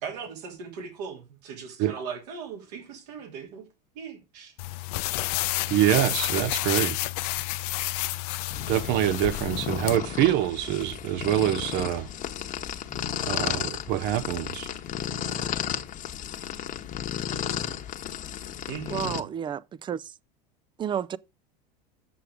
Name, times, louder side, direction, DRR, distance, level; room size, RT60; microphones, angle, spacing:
voice 1, 0.0-3.6 3.9-4.5 18.7-19.3, right 6 dB, 75° right, 3.0 m, -39 dB
sound 1, 4.6-10.0, left 19 dB, 65° left, 0.6 m, -30 dB
voice 2, 5.7-7.0 8.7-12.1 13.2-14.7, right 13 dB, 55° right, 0.8 m, -25 dB
sound 2, 8.5-19.2, left 9 dB, 40° left, 1.1 m, -33 dB
voice 3, 18.9-20.1 20.8-21.2, right 8 dB, 20° right, 0.4 m, -31 dB
7.7 x 6.8 x 4.9 m
hypercardioid pair, 90°, 21 cm